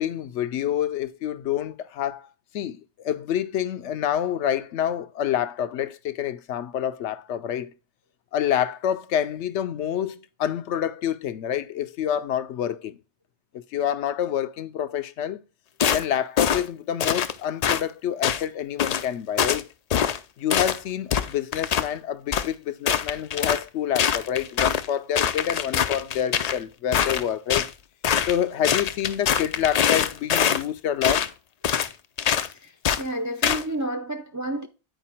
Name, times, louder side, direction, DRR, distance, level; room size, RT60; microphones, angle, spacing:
voice 1, 0.0-2.3 2.5-7.7 8.3-13.0 13.5-15.4 15.9-19.7 20.4-27.7 28.3-31.3, left 10 dB, 80° left, 0.9 m, -27 dB
sound 1, 15.8-16.1 16.4-16.6 17.0-17.3 17.6-17.8 18.2-18.4 18.8-19.1 19.4-19.6 19.9-20.2 20.5-20.8 21.1-21.9 22.3-22.5 22.9-23.6 24.0-24.9 25.2-26.6 26.9-27.7 28.0-28.4 28.6-30.6 31.0-31.3 31.6-31.9 32.2-32.5 32.8-33.0 33.4-33.6, left 8 dB, 60° left, 0.4 m, -23 dB
voice 2, 33.0-34.7, right 1 dB, 30° right, 0.3 m, -30 dB
9.1 x 4.6 x 4.3 m
omnidirectional pair, 1.2 m